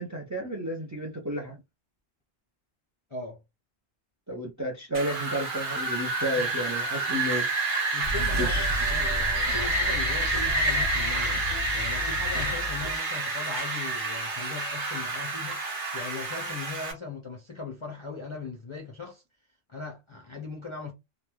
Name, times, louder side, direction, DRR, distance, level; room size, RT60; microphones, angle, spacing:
voice 1, 0.0-1.6 4.3-7.5 8.3-8.7, equal, 25° right, 0.4 m, -32 dB
voice 2, 3.1-3.4 6.4-6.6 7.0-7.2 7.9-11.4 11.7-19.2 19.7-20.9, left 4 dB, 40° left, 0.4 m, -39 dB
Wind, 4.9-16.9, right 2 dB, 50° right, 1.0 m, -29 dB
sound 1, 8.0-13.0, left 1 dB, 75° right, 1.1 m, -33 dB
3.1 x 2.2 x 2.3 m
omnidirectional pair, 1.1 m